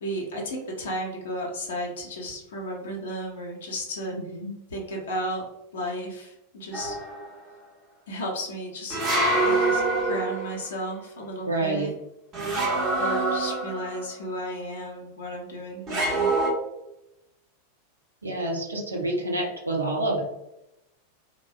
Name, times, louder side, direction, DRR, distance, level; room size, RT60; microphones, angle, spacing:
voice 1, 0.0-4.2 4.7-5.4 5.7-7.0 8.1-9.0 9.4-12.0 12.9-16.3, equal, 60° left, -1 dB, 0.6 m, -33 dB
voice 2, 4.1-4.5 11.4-11.9 18.2-20.4, right 2 dB, 80° right, -1 dB, 0.5 m, -28 dB
sound 1, 6.7-7.3 8.9-10.6 12.3-14.1 15.9-16.5, right 2 dB, 30° right, 0.8 m, -25 dB
3.2 x 2.1 x 2.3 m, 0.90 s
figure-of-eight pair, 90°, 0 cm